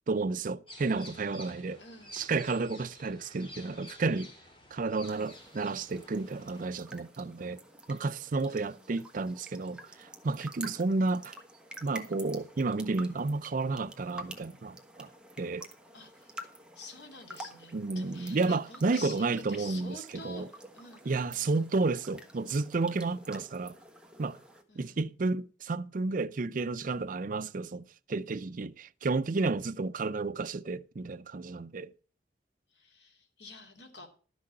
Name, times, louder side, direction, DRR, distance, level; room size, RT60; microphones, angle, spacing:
voice 1, 0.1-1.8 2.1-4.3 4.7-7.6 7.9-11.4 11.8-15.1 15.4-15.7 17.7-20.5 21.0-23.8 24.2-24.4 24.8-31.9, right 3 dB, 50° right, 0.5 m, -31 dB
sound 1, 0.7-6.7, left 1 dB, 30° left, 2.7 m, -51 dB
voice 2, 1.8-2.2 8.5-8.9 15.9-16.3 16.8-20.4 20.7-21.7 24.7-25.0 32.7-34.1, left 3 dB, 70° left, 2.6 m, -48 dB
sound 2, 5.0-24.6, right 1 dB, 5° right, 1.3 m, -49 dB
12.5 x 6.2 x 7.5 m
head